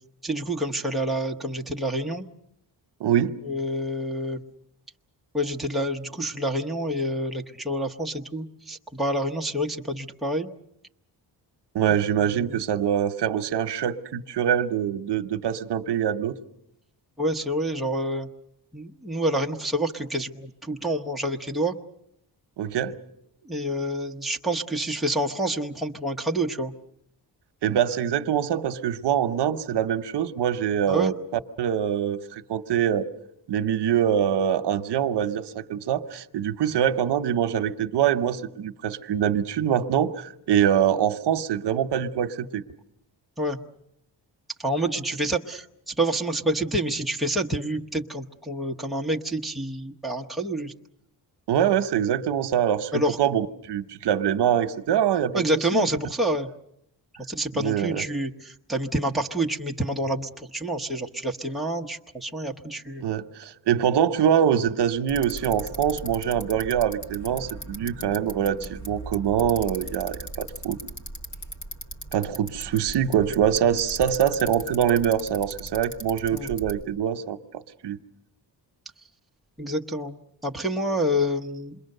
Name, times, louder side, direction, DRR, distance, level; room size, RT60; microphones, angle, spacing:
voice 1, 0.2-2.2 3.4-4.4 5.3-10.5 12.3-12.5 17.2-18.3 18.7-21.7 23.4-26.7 30.9-31.1 43.4-43.6 44.6-50.7 52.9-53.2 55.3-56.5 57.3-63.0 76.3-76.5 79.6-80.2 80.4-81.8, right 1 dB, ahead, 0.9 m, -28 dB
voice 2, 3.0-3.3 11.7-16.4 22.6-23.0 27.6-33.1 33.5-42.6 51.5-55.4 55.7-55.9 57.5-58.1 63.0-70.8 72.1-78.0, right 9 dB, 75° right, 1.0 m, -24 dB
Bicycle, 65.1-76.8, right 1 dB, 45° left, 2.2 m, -38 dB
28.0 x 22.0 x 6.6 m
wide cardioid pair, 180°, 42 cm